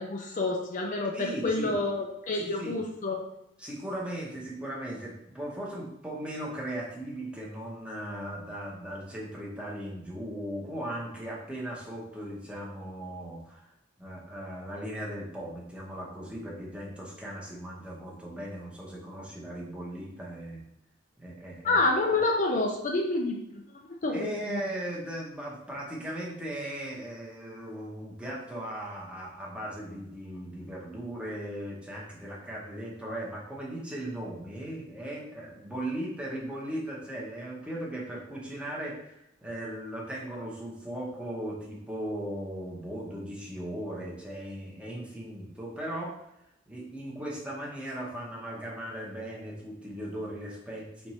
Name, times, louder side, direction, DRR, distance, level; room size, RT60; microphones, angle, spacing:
voice 1, 0.0-3.2 21.6-24.6, left 2 dB, 45° left, 1 dB, 0.5 m, -28 dB
voice 2, 1.1-1.8 2.3-2.8 3.6-13.7 14.0-20.6 21.2-21.8 24.1-46.2 46.7-51.1, right 1 dB, 5° right, -4 dB, 1.0 m, -38 dB
4.4 x 2.6 x 4.2 m, 0.83 s
head